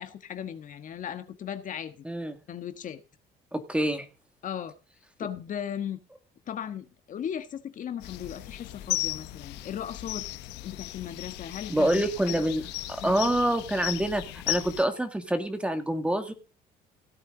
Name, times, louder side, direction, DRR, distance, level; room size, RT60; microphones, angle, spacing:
voice 1, 0.0-2.0 2.5-3.0 4.4-4.7 5.2-6.0 6.5-10.2 10.6-12.1 12.3-12.4 13.0-13.3, left 9 dB, 50° left, 9 dB, 1.4 m, -37 dB
voice 2, 2.0-2.4 3.5-4.1 11.7-12.6 12.9-16.3, right 1 dB, 5° right, 8 dB, 2.1 m, -26 dB
sound 1, 8.0-14.8, left 17 dB, 85° left, 1.0 m, -36 dB
16.5 x 8.8 x 3.9 m, 0.31 s
cardioid pair, 110°, 17 cm